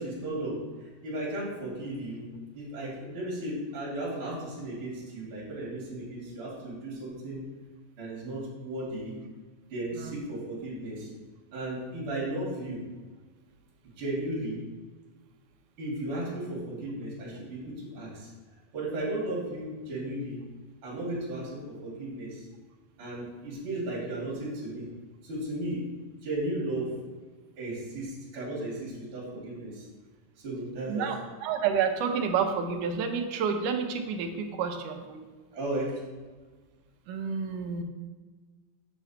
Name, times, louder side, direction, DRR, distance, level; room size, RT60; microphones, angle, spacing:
voice 1, 0.0-2.3 2.5-7.4 8.0-9.1 9.7-11.1 11.5-12.8 14.0-14.6 15.8-18.3 18.7-20.4 20.8-22.4 23.0-24.9 25.2-25.8 26.2-26.9 27.6-29.8 30.4-31.1 35.5-36.0, right 1 dB, 40° right, -5 dB, 3.1 m, -35 dB
voice 2, 9.9-10.2 30.9-35.3 37.1-37.8, right 6 dB, 75° right, 4 dB, 2.2 m, -30 dB
8.0 x 6.2 x 4.5 m, 1.4 s
omnidirectional pair, 4.0 m